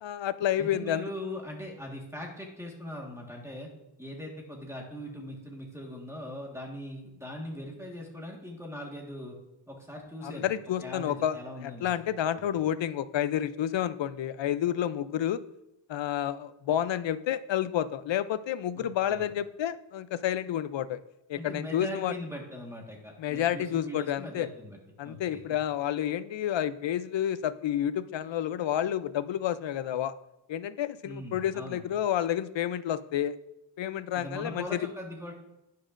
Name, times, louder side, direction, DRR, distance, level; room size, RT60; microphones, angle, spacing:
voice 1, 0.0-1.1 10.2-15.4 15.9-21.0 21.3-22.1 23.2-24.5 25.0-30.1 30.5-33.4 33.8-34.8, left 10 dB, 75° left, 14 dB, 0.6 m, -30 dB
voice 2, 0.6-3.7 4.0-9.3 9.7-10.5 10.8-12.0 18.7-19.3 21.4-25.4 31.0-31.8 34.1-35.3, equal, 5° right, 0 dB, 1.5 m, -40 dB
11.5 x 9.6 x 2.5 m, 0.90 s
wide cardioid pair, 170°, 45 cm